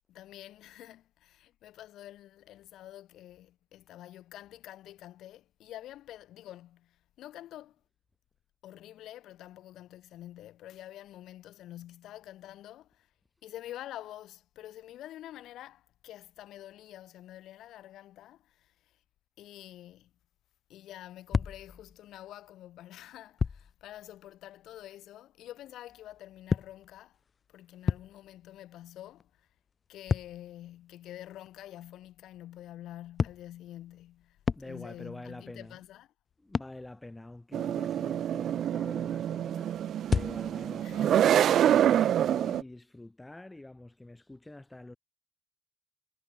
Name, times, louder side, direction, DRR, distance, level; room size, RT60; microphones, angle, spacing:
voice 1, 0.1-7.8 8.6-13.1 13.4-19.0 19.4-20.1 20.7-27.2 27.5-29.5 29.9-34.4 34.6-36.1 40.8-41.2, left 13 dB, 80° left, 7.8 m, -47 dB
sound 1, 21.3-22.3 23.4-23.7 25.9-28.6 28.9-31.6 33.2-35.1 35.5-35.9 36.5-36.9 40.0-40.7, left 5 dB, 40° left, 0.5 m, -33 dB
voice 2, 34.6-35.8 36.4-39.8 40.1-41.3 41.7-45.0, left 2 dB, 15° left, 1.8 m, -46 dB
sound 2, 37.5-42.6, right 10 dB, 70° right, 0.7 m, -26 dB
cardioid pair, 90°, 0 cm